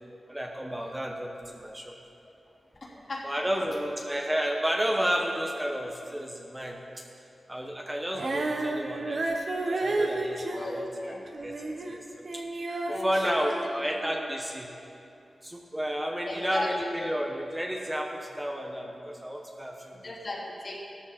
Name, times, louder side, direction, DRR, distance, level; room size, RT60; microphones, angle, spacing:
voice 1, 0.3-1.9 2.9-7.0 7.5-9.3 9.7-10.9 11.4-11.5 11.9-12.0 12.3-12.4 12.9-14.7 15.4-20.0, equal, 10° right, 0 dB, 1.0 m, -31 dB
Female singing, 8.1-14.4, right 2 dB, 55° right, 1.2 m, -32 dB
voice 2, 10.5-11.2 12.9-13.3 16.2-16.7 17.0-17.1 20.0-20.8, left 2 dB, 50° left, -5 dB, 3.1 m, -36 dB
16.0 x 13.0 x 4.3 m, 2.7 s
wide cardioid pair, 105°, 0 cm